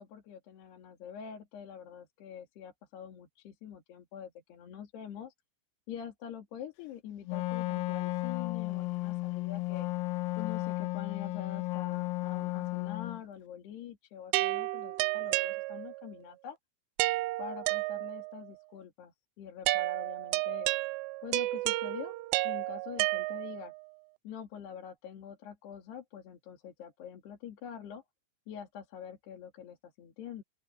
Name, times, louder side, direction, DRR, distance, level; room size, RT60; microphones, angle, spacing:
voice 1, 0.0-5.3 5.9-9.9 10.4-16.6 17.4-20.7 21.2-22.2 22.4-23.7 24.2-28.0 28.5-30.4, left 8 dB, 55° left, 4.2 m, -45 dB
Wind instrument woodwind instrument, 7.3-13.2, left 19 dB, 85° left, 3.6 m, -34 dB
sound 1, 14.3-16.1 17.0-18.4 19.7-23.8, right 20 dB, 85° right, 3.0 m, -32 dB
open air
omnidirectional pair, 5.9 m